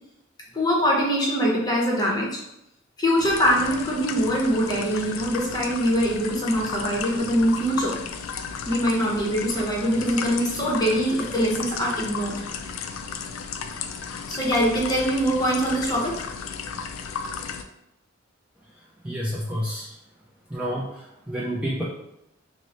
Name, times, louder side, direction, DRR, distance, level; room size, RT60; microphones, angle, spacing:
voice 1, 0.5-2.4 3.0-8.0 8.7-12.4 14.3-16.3, equal, 20° left, -3 dB, 0.7 m, -23 dB
sound 1, 3.2-17.6, left 6 dB, 90° left, 0.3 m, -34 dB
voice 2, 18.6-20.0 20.5-21.8, equal, 5° right, -6 dB, 0.3 m, -30 dB
3.0 x 2.0 x 3.9 m, 0.84 s
head